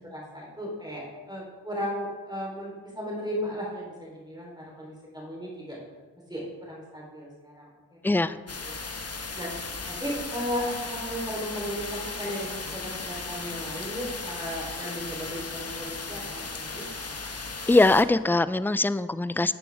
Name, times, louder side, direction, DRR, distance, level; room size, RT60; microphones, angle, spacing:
voice 1, 0.1-5.8 6.3-7.7 8.3-8.4 8.6-8.8 9.4-9.5 9.9-16.9, equal, 10° right, -4 dB, 3.5 m, -35 dB
voice 2, 8.0-8.4 17.7-19.5, left 2 dB, 5° left, 15 dB, 0.3 m, -22 dB
sound 1, 8.5-18.0, left 3 dB, 40° left, 1.1 m, -36 dB
12.5 x 8.3 x 3.5 m, 1.4 s
cardioid pair, 40°, 39 cm